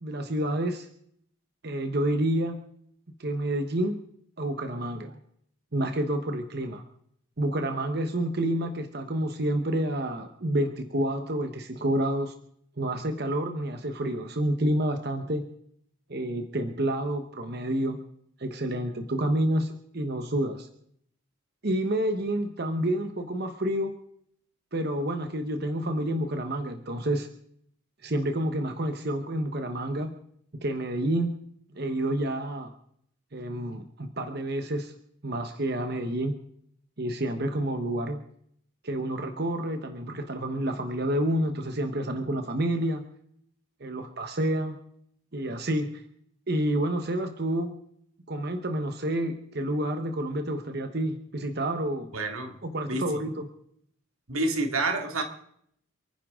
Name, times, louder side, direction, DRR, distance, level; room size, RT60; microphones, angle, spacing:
voice 1, 0.0-0.9 1.6-2.6 3.2-4.0 4.4-5.1 5.7-6.8 7.4-12.3 12.8-15.4 16.1-18.0 18.4-20.7 21.6-23.9 24.7-27.3 28.0-30.1 30.6-31.3 31.7-32.7 33.3-34.9 35.2-36.4 37.0-38.2 38.8-43.0 43.8-44.8 45.3-46.0 46.5-47.7 48.3-52.1 52.6-53.5, right 1 dB, 50° right, 6 dB, 1.1 m, -29 dB
voice 2, 52.1-52.6 52.9-53.2 54.3-55.2, right 2 dB, 90° right, 4 dB, 2.2 m, -28 dB
28.5 x 10.0 x 3.7 m, 0.68 s
head